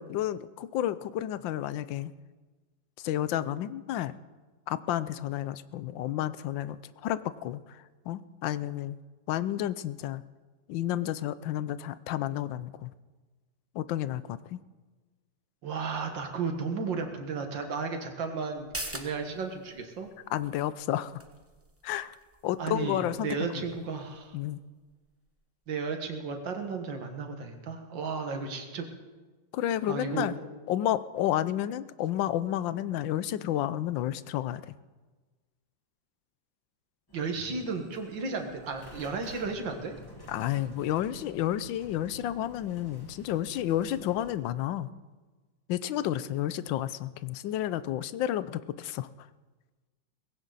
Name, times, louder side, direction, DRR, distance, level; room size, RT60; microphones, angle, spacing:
voice 1, 0.0-2.1 3.0-4.1 4.7-9.0 9.3-10.2 10.7-12.9 13.7-14.6 20.3-21.1 21.8-22.1 22.4-23.3 24.3-24.6 29.5-30.3 30.7-34.7 40.3-44.9 45.7-49.1, left 12 dB, 80° left, 15 dB, 1.3 m, -31 dB
voice 2, 15.6-20.1 22.6-24.3 25.7-28.9 29.9-30.5 37.1-40.0, right 4 dB, 75° right, 5 dB, 2.3 m, -34 dB
sound 1, 18.5-25.7 26.0-26.1, right 1 dB, 10° right, 0.7 m, -46 dB
sound 2, 37.1-44.3, left 1 dB, 10° left, 2.3 m, -50 dB
18.5 x 16.5 x 4.1 m, 1.3 s
omnidirectional pair, 2.0 m